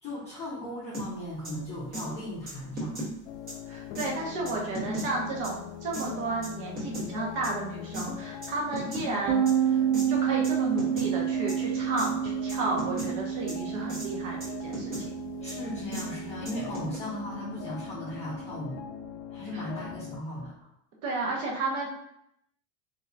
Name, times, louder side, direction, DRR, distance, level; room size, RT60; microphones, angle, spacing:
voice 1, 0.0-3.1 15.4-18.8 19.3-20.5, left 1 dB, 15° left, -10 dB, 0.8 m, -37 dB
sound 1, 0.9-1.1 1.4-1.5 1.9-2.1 2.5-3.1 3.5-3.6 4.0-4.1 4.5-5.1 5.4-5.5 5.9-6.1 6.4-7.1 7.4-7.5 7.9-8.1 8.4-9.1 9.5-9.6 9.9-10.1 10.4-10.5 10.8-11.1 11.5-11.6 12.0-12.1 12.5-13.1 13.5-13.6 13.9-14.1 14.4-15.0 15.5-15.6 15.9-16.0 16.5-17.0, right 1 dB, 25° right, 1.2 m, -36 dB
sound 2, 3.3-20.2, left 9 dB, 70° left, 0.5 m, -42 dB
voice 2, 3.7-14.9 19.5-19.6 21.0-21.9, right 2 dB, 45° right, -2 dB, 1.1 m, -33 dB
sound 3, 9.3-18.7, right 9 dB, 80° right, 0.9 m, -30 dB
3.7 x 2.8 x 2.7 m, 0.78 s
supercardioid pair, 170°, 38 cm